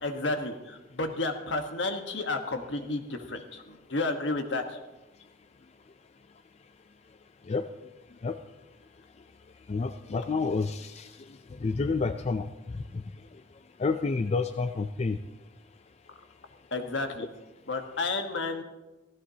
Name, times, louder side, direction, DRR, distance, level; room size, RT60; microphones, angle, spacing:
voice 1, 0.0-4.8 16.7-17.3 17.7-18.6, left 2 dB, 65° left, 5 dB, 1.3 m, -31 dB
voice 2, 9.7-13.0 13.8-15.2, left 4 dB, 35° left, 8 dB, 0.4 m, -30 dB
16.0 x 14.5 x 2.8 m, 1.1 s
head